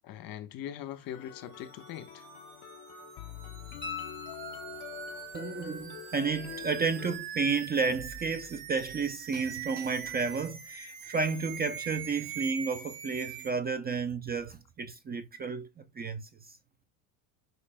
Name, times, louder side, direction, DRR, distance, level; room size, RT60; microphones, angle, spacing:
voice 1, 0.0-2.3, left 10 dB, 50° left, 1.2 m, -41 dB
sound 1, 1.1-7.2, left 11 dB, 65° left, 0.8 m, -46 dB
sound 2, 1.2-13.5, right 8 dB, 75° right, 2.7 m, -43 dB
sound 3, 3.8-5.1 7.9-8.0, left 6 dB, 25° left, 2.2 m, -42 dB
voice 2, 5.3-15.7 16.0-16.6, right 4 dB, 20° right, 0.6 m, -32 dB
8.4 x 5.7 x 2.2 m
supercardioid pair, 105°, 46 cm